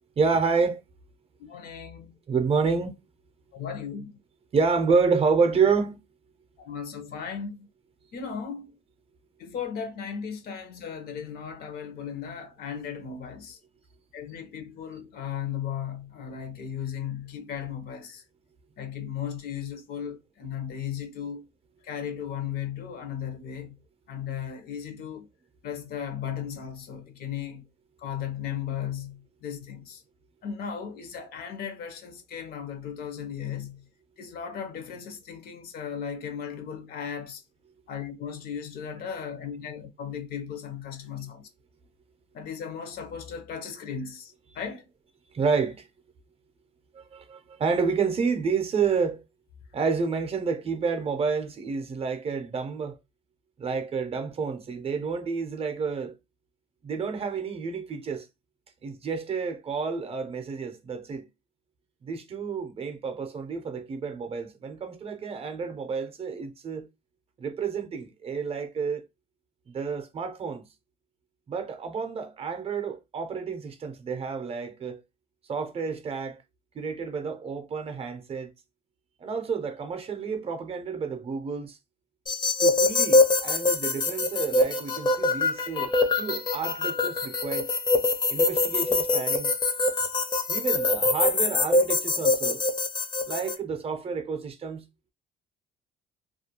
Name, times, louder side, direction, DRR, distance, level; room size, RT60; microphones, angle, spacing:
voice 1, 0.2-0.8 2.3-2.9 4.5-6.0 45.3-45.9 46.9-49.2 49.7-53.0 53.6-56.1 56.8-58.3 58.8-61.3 62.0-66.9 67.4-69.1 69.7-70.6 71.5-75.0 75.5-76.4 76.7-78.5 79.2-81.8 82.6-87.7 88.3-89.5 90.5-92.6 93.3-94.8, right 5 dB, 35° right, 0.5 m, -29 dB
voice 2, 1.4-2.2 3.5-4.1 6.6-7.7 8.1-8.7 9.4-13.6 14.1-18.2 18.8-21.4 21.8-23.7 24.1-25.3 25.6-27.6 28.0-30.0 30.4-33.8 34.2-37.4 37.9-41.4 42.3-44.9, left 8 dB, 65° left, 0.7 m, -36 dB
sound 1, 82.3-93.5, left 2 dB, 25° left, 0.5 m, -24 dB
2.3 x 2.2 x 2.8 m
cardioid pair, 110°, 17 cm